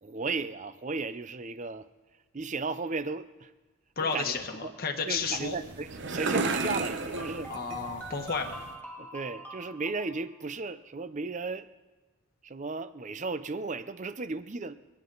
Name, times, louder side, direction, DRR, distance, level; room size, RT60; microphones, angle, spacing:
voice 1, 0.0-1.9 2.3-3.5 4.0-4.7 5.1-7.5 9.0-11.7 12.4-14.7, right 3 dB, 35° right, 13 dB, 0.6 m, -35 dB
voice 2, 4.0-5.6 7.5-8.6, left 5 dB, 45° left, 3 dB, 1.2 m, -32 dB
sound 1, 5.2-8.8, right 3 dB, 55° right, 1.0 m, -34 dB
sound 2, 7.1-10.3, right 1 dB, 10° left, 1.9 m, -44 dB
27.5 x 9.6 x 4.0 m, 1.2 s
head